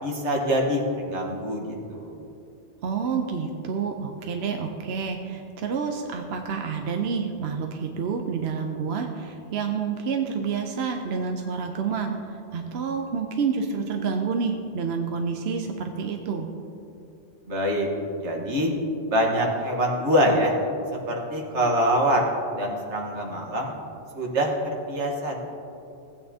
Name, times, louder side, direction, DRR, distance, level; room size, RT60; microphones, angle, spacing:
voice 1, 0.0-2.2 17.5-17.9 18.1-18.7 19.1-20.5 21.1-23.7 24.1-25.4, equal, 85° right, 0 dB, 1.6 m, -25 dB
voice 2, 2.8-16.5, right 5 dB, 65° right, 4 dB, 0.9 m, -28 dB
16.0 x 8.7 x 2.8 m, 2.7 s
omnidirectional pair, 1.2 m